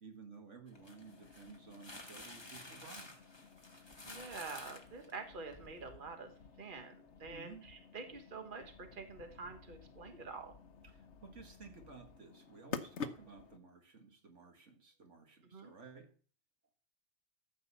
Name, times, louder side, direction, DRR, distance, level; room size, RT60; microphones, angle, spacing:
voice 1, 0.0-3.1 7.3-7.7 10.8-16.1, right 4 dB, 85° right, 5 dB, 2.2 m, -55 dB
sound 1, 0.7-13.6, left 5 dB, 75° left, 1.2 m, -51 dB
sound 2, 0.7-5.8, left 2 dB, 20° left, 1.7 m, -52 dB
voice 2, 4.1-6.3 6.6-10.5 15.5-15.7, right 4 dB, 45° right, 6 dB, 1.7 m, -47 dB
14.0 x 5.4 x 7.0 m, 0.40 s
omnidirectional pair, 1.2 m